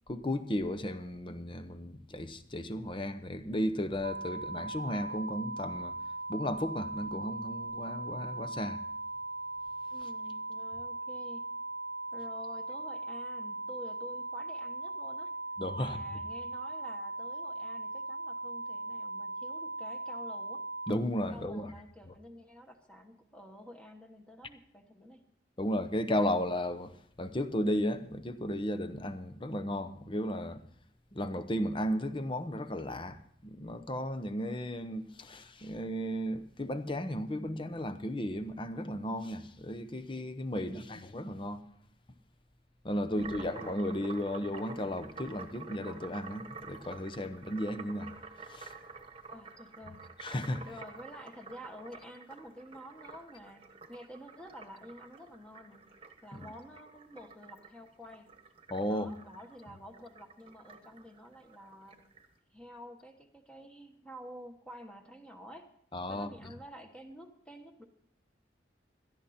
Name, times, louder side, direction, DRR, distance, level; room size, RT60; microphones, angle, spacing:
voice 1, 0.1-5.9 6.3-8.8 15.6-16.0 20.9-21.7 25.6-26.9 27.2-30.6 31.1-41.6 42.8-48.1 48.5-48.7 50.2-50.7 56.3-56.4 58.7-59.1 65.9-66.3, left 1 dB, 25° left, 0.9 m, -34 dB
sound 1, 4.0-20.9, right 2 dB, 50° right, 0.4 m, -39 dB
voice 2, 9.9-11.5 12.1-15.3 15.8-20.6 21.3-25.2 40.5-41.0 43.1-43.5 49.3-50.1 50.7-55.9 56.2-58.3 58.9-62.0 62.5-65.7 66.1-67.8, equal, 5° left, 1.3 m, -50 dB
sound 2, 43.1-62.3, right 4 dB, 30° right, 1.3 m, -49 dB
17.5 x 13.0 x 4.3 m
head